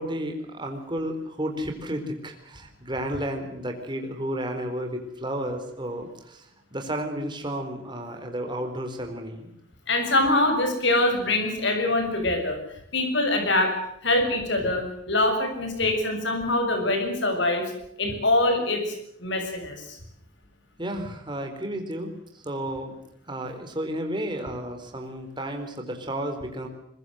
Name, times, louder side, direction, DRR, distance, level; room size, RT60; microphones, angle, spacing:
voice 1, 0.0-9.5 20.8-23.0 23.3-26.7, right 1 dB, 20° right, 5 dB, 4.2 m, -32 dB
voice 2, 9.9-12.6 12.9-13.7 14.0-17.7 18.0-18.9 19.2-20.0, left 2 dB, 60° left, 6 dB, 6.9 m, -24 dB
23.5 x 22.0 x 7.8 m, 0.74 s
head